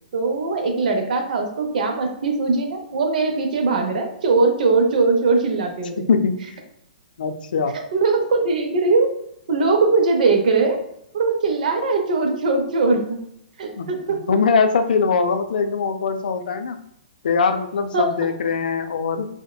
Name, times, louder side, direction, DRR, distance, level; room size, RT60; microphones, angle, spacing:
voice 1, 0.1-6.1 7.9-9.1 9.5-10.8 11.1-13.2 13.6-14.2 17.9-18.1, right 3 dB, 70° right, 4 dB, 0.5 m, -20 dB
voice 2, 7.2-7.7 13.8-13.9 14.3-16.8 17.2-19.3, left 5 dB, 80° left, 7 dB, 0.3 m, -21 dB
2.8 x 2.1 x 2.2 m, 0.75 s
hypercardioid pair, 140°, 5 cm